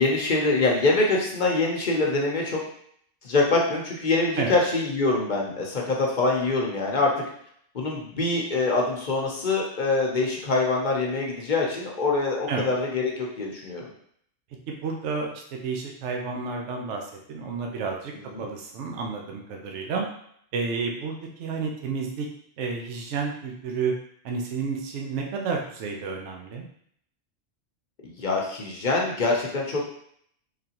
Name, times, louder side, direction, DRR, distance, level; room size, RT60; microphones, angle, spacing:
voice 1, 0.0-2.6 3.2-7.1 7.7-13.9 18.2-18.5 28.0-29.8, left 3 dB, 45° left, -1 dB, 0.7 m, -24 dB
voice 2, 14.7-18.1 18.4-20.1 20.5-22.3 22.6-23.9 24.2-26.7, right 5 dB, 70° right, 1 dB, 0.9 m, -31 dB
3.9 x 3.3 x 2.8 m, 0.67 s
omnidirectional pair, 1.3 m